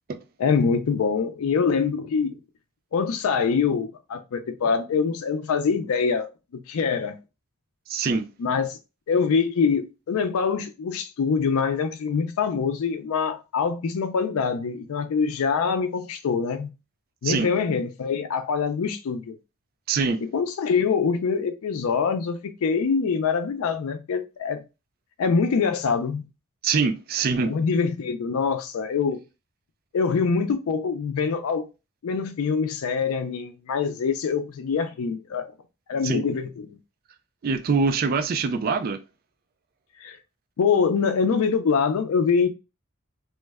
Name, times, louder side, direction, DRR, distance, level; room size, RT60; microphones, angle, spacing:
voice 1, 0.4-2.4 2.9-7.2 8.4-8.8 9.1-16.7 17.2-19.3 20.3-24.6 25.2-26.2 27.4-29.2 29.9-31.7 32.0-35.5 35.9-36.8 40.0-40.2 40.6-42.5, left 5 dB, 90° left, 0.4 m, -24 dB
voice 2, 7.9-8.3 17.2-17.5 19.9-20.2 26.6-27.5 36.0-36.2 37.4-39.0, right 4 dB, 45° right, 0.3 m, -24 dB
3.0 x 2.1 x 3.4 m
head